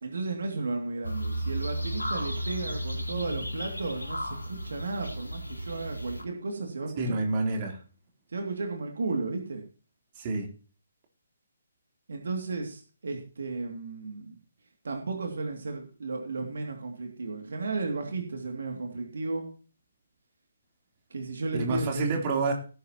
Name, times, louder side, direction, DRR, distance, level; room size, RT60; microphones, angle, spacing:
voice 1, 0.0-7.2 8.3-9.6 12.1-14.4 14.8-19.5 21.1-22.0, right 3 dB, 60° right, 3 dB, 2.6 m, -34 dB
sound 1, 1.0-6.2, equal, 80° left, 2.8 m, -34 dB
voice 2, 7.0-7.8 10.2-10.5 21.5-22.5, right 3 dB, 30° right, 1 dB, 3.6 m, -28 dB
18.0 x 9.2 x 3.0 m, 0.37 s
figure-of-eight pair, 135°, 0 cm